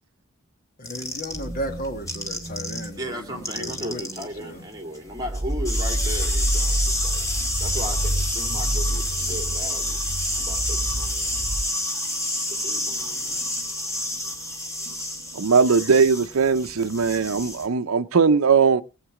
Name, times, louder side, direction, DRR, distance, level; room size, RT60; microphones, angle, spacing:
voice 1, 0.8-4.6, equal, 40° left, 1.5 m, -35 dB
sound 1, 0.9-2.9 3.2-17.7, left 1 dB, 15° left, 2.1 m, -29 dB
sound 2, 1.3-4.0 4.4-4.8 5.1-11.6, right 1 dB, 40° right, 1.5 m, -29 dB
voice 2, 3.0-7.3 7.6-10.0 10.3-11.5 12.5-13.4, equal, 20° right, 2.7 m, -36 dB
voice 3, 15.3-18.8, right 5 dB, 75° right, 0.6 m, -19 dB
19.0 x 8.0 x 4.9 m
head